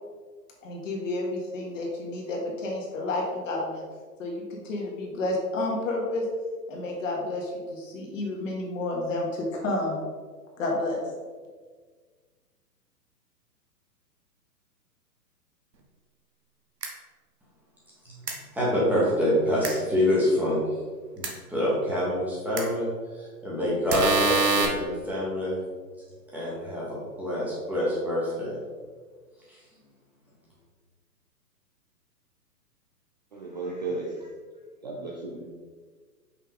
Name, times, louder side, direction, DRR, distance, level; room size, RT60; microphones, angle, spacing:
voice 1, 0.6-3.8 4.2-6.3 6.7-10.0 10.6-11.0, left 2 dB, 50° left, -1 dB, 1.8 m, -30 dB
sound 1, 16.8-16.9 18.3-18.4 19.6-19.7 21.2-21.3 22.6-22.7 23.9-24.7, right 3 dB, 75° right, 1.3 m, -24 dB
voice 2, 18.5-20.6 21.2-22.9 23.4-25.6 26.3-28.6, left 1 dB, 5° right, -8 dB, 1.3 m, -26 dB
voice 3, 33.3-34.3 34.8-35.4, right 3 dB, 30° right, -2 dB, 0.4 m, -34 dB
5.7 x 4.5 x 3.6 m, 1.5 s
figure-of-eight pair, 120°, 49 cm